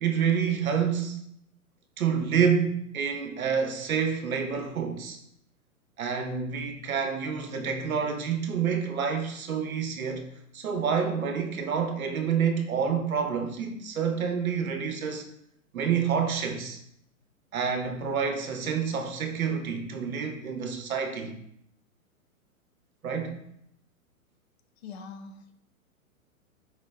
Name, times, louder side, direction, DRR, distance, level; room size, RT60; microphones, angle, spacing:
voice 1, 0.0-1.2 2.0-5.2 6.0-10.2 10.5-15.3 15.7-16.8 17.5-21.4 23.0-23.4, right 6 dB, 70° right, 0.9 m, -28 dB
voice 2, 24.8-25.5, left 5 dB, 50° left, 0.6 m, -43 dB
4.8 x 3.1 x 3.3 m
figure-of-eight pair, 110°, 43 cm